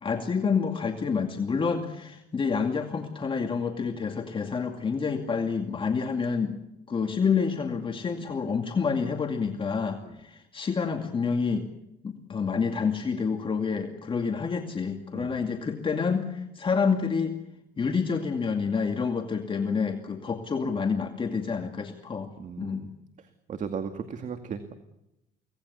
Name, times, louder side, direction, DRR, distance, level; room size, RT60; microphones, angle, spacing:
voice 1, 0.0-6.6 6.9-11.7 12.0-17.4 17.8-22.9, left 5 dB, 30° left, 4 dB, 2.4 m, -28 dB
voice 2, 22.4-22.9 23.5-24.7, right 6 dB, 50° right, 7 dB, 2.2 m, -36 dB
25.0 x 18.5 x 8.4 m, 0.87 s
cardioid pair, 110°, 17 cm